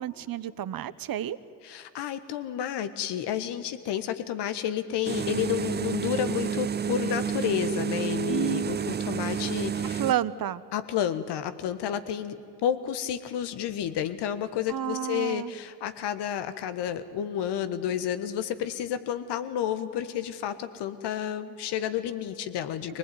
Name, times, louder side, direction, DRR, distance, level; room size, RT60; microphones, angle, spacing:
voice 1, 0.0-1.4 8.3-8.7 10.0-10.6 14.7-15.5, right 10 dB, 55° right, 14 dB, 1.2 m, -30 dB
voice 2, 1.6-10.0 10.7-12.4 12.6-23.0, left 10 dB, 70° left, 11 dB, 1.6 m, -31 dB
sound 1, 5.0-10.1, right 7 dB, 25° right, 0.5 m, -30 dB
24.0 x 19.0 x 9.5 m, 2.5 s
hypercardioid pair, 50°, 42 cm